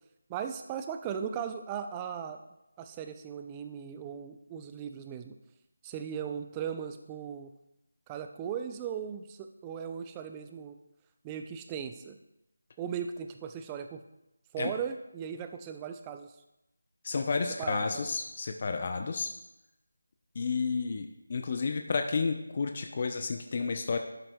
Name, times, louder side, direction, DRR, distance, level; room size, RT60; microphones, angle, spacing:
voice 1, 0.3-2.4 2.8-5.3 5.8-7.5 8.1-10.8 11.2-12.2 12.8-14.0 14.5-16.3 17.6-18.0, right 8 dB, 15° right, 7 dB, 0.4 m, -38 dB
voice 2, 17.0-19.3 20.4-24.0, left 4 dB, 40° left, 5 dB, 0.6 m, -31 dB
12.0 x 7.6 x 2.3 m, 0.91 s
figure-of-eight pair, 160°, 0 cm